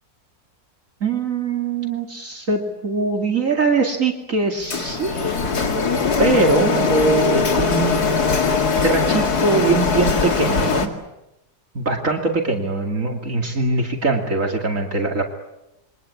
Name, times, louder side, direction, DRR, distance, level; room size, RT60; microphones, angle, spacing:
voice 1, 1.0-5.4 6.2-8.0 8.8-10.9 11.7-15.2, right 3 dB, 55° right, 2 dB, 2.8 m, -22 dB
Printer, 4.7-10.9, left 4 dB, 80° left, 2.7 m, -20 dB
28.5 x 23.5 x 8.6 m, 0.91 s
omnidirectional pair, 1.6 m